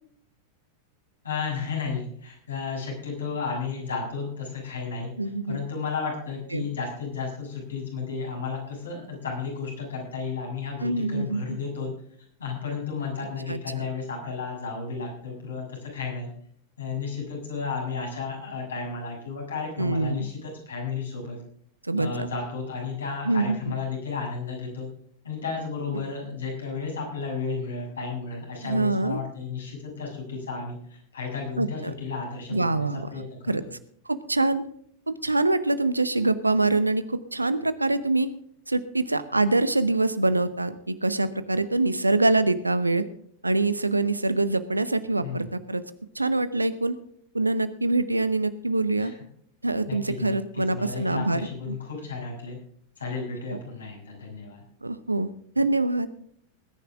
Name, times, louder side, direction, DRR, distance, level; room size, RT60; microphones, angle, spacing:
voice 1, 1.2-5.1 5.5-11.9 12.4-16.3 16.8-21.4 22.0-24.9 25.2-33.2 45.2-45.5 49.0-49.1 49.9-52.6 53.0-54.6, left 5 dB, 70° left, -1 dB, 6.9 m, -33 dB
voice 2, 5.2-5.6 6.5-6.6 10.8-11.4 13.5-13.6 19.8-20.3 21.9-22.3 23.2-23.7 25.9-26.0 28.6-29.2 31.6-31.9 32.5-33.1 33.5-33.6 34.1-34.6 35.1-38.3 38.7-43.0 43.4-45.8 46.1-47.0 47.3-49.1 49.6-51.8 53.5-53.6 54.8-56.1, right 2 dB, 85° right, 14 dB, 0.9 m, -25 dB
20.5 x 10.5 x 3.6 m, 0.64 s
figure-of-eight pair, 90°, 0 cm